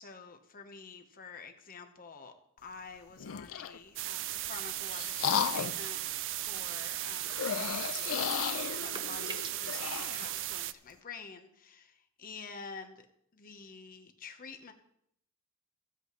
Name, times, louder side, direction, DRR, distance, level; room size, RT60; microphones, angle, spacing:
voice 1, 0.0-2.3 2.6-13.1 13.3-14.7, left 5 dB, 40° left, 5 dB, 1.0 m, -48 dB
sound 1, 3.2-3.8 4.4-5.9 7.3-10.3, left 8 dB, 75° left, 0.5 m, -35 dB
sound 2, 4.0-10.7, right 14 dB, 60° right, 0.4 m, -37 dB
sound 3, 7.8-8.5 8.7-9.8, right 4 dB, 20° right, 0.7 m, -44 dB
15.5 x 8.3 x 3.1 m, 0.72 s
head